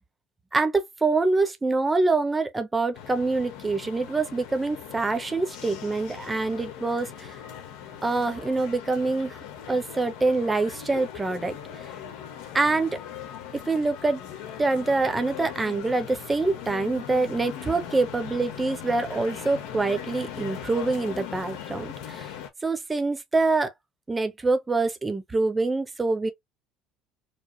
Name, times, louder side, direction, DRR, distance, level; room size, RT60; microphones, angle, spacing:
voice 1, 0.5-7.4 8.0-9.4 9.7-11.6 12.5-13.0 13.5-14.2 14.6-22.3 22.6-23.7 24.1-26.3, right 3 dB, 15° right, 0.7 m, -25 dB
sound 1, 2.9-22.5, left 9 dB, 85° left, 1.1 m, -40 dB
4.6 x 2.0 x 3.0 m
cardioid pair, 135°, 0 cm